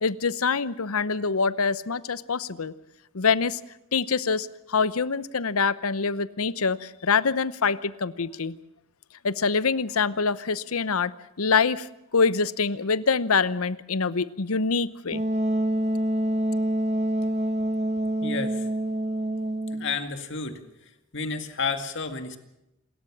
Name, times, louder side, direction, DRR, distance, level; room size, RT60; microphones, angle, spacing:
voice 1, 0.0-2.7 3.1-3.6 3.9-8.5 9.2-11.1 11.4-11.9 12.1-15.2, left 5 dB, 80° left, 16 dB, 0.8 m, -25 dB
Wind instrument woodwind instrument, 15.1-19.9, right 1 dB, 30° right, 1.2 m, -26 dB
voice 2, 18.2-18.7 19.7-20.6 21.1-22.4, left 4 dB, 55° left, 7 dB, 2.1 m, -31 dB
28.0 x 13.5 x 7.4 m, 0.87 s
head